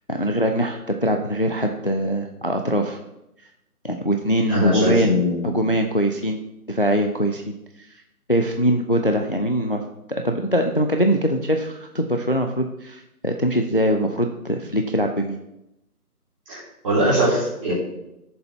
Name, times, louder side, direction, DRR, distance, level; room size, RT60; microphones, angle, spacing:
voice 1, 0.1-3.0 3.8-5.1 5.4-6.4 6.7-7.5 8.3-9.8 10.2-15.4, equal, 35° left, 4 dB, 0.5 m, -22 dB
voice 2, 4.5-5.5 16.5-17.7, equal, 20° right, -8 dB, 3.8 m, -21 dB
14.0 x 7.0 x 3.3 m, 0.88 s
figure-of-eight pair, 160°, 46 cm